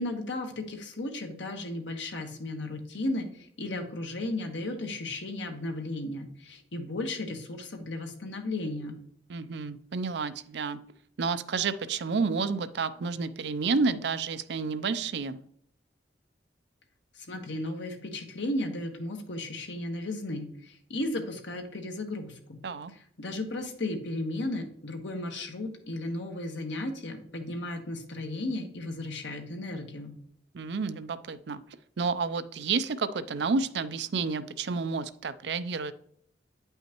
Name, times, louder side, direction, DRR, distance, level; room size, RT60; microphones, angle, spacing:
voice 1, 0.0-9.0 17.1-22.6 23.2-30.1, left 2 dB, 90° left, 4 dB, 1.3 m, -35 dB
voice 2, 9.3-10.8 11.2-15.4 22.6-22.9 30.5-31.6 32.0-35.9, right 4 dB, 70° right, 13 dB, 0.5 m, -30 dB
9.2 x 5.6 x 2.9 m, 0.68 s
head